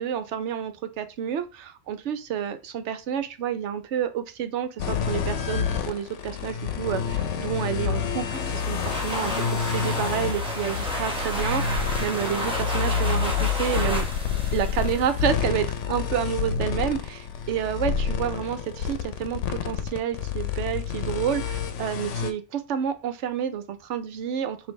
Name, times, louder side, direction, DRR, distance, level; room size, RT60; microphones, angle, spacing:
voice 1, 0.0-14.1 14.5-24.7, right 9 dB, 80° right, 9 dB, 1.0 m, -29 dB
sound 1, 4.8-22.3, left 7 dB, 90° left, 0.9 m, -28 dB
sound 2, 8.3-15.8, right 1 dB, 5° right, 0.9 m, -32 dB
5.0 x 2.7 x 3.1 m, 0.30 s
omnidirectional pair, 1.2 m